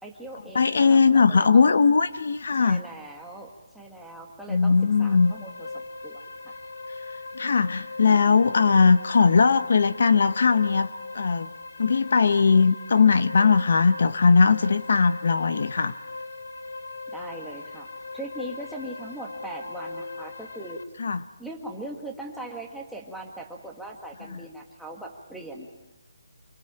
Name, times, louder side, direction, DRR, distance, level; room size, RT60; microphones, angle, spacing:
voice 1, 0.0-1.7 2.6-6.2 17.1-17.9 18.1-20.8 21.4-25.7, right 1 dB, ahead, -2 dB, 1.7 m, -40 dB
voice 2, 0.5-2.8 4.5-5.3 7.3-10.9 11.1-11.5 11.8-15.9 21.0-21.2 24.3-24.4, left 5 dB, 55° left, 13 dB, 0.8 m, -19 dB
sound 1, 4.5-20.8, left 3 dB, 80° left, 1.6 m, -40 dB
27.0 x 22.5 x 8.8 m, 1.0 s
hypercardioid pair, 175°, 0 cm